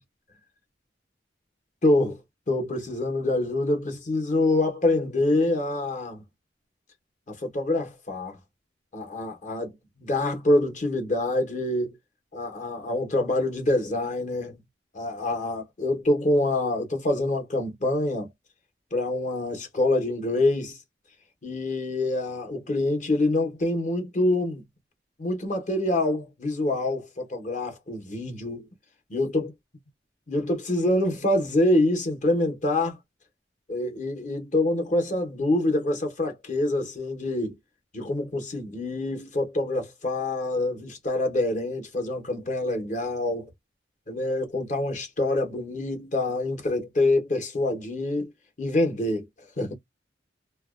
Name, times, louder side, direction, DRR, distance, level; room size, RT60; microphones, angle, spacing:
voice 1, 1.8-2.2 2.5-6.2 7.3-8.4 8.9-11.9 12.3-14.6 14.9-18.3 18.9-20.8 21.4-24.6 25.2-28.7 29.1-29.5 30.3-33.0 33.7-37.6 37.9-43.5 44.1-48.3 48.6-49.3 49.6-49.7, left 2 dB, 45° left, 0.9 m, -26 dB
2.5 x 2.2 x 2.3 m
head